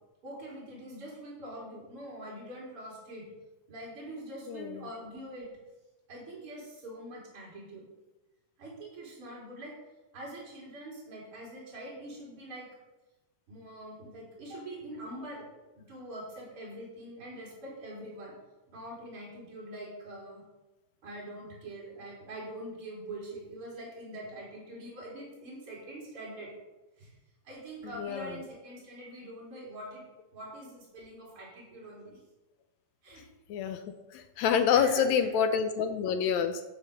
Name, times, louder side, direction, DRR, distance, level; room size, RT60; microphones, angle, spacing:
voice 1, 0.2-3.2 3.7-5.5 6.1-7.8 8.6-9.7 10.1-12.7 13.5-15.4 15.7-18.3 18.7-20.4 21.0-26.5 27.0-27.1 27.4-30.0 30.3-32.2 33.0-33.2 34.7-35.4 36.2-36.3, right 1 dB, 35° right, -4 dB, 4.7 m, -44 dB
voice 2, 4.5-4.8 28.0-28.3 33.5-33.8 34.1-36.6, left 7 dB, 80° left, 8 dB, 1.6 m, -27 dB
15.0 x 5.2 x 6.7 m, 1.1 s
omnidirectional pair, 4.1 m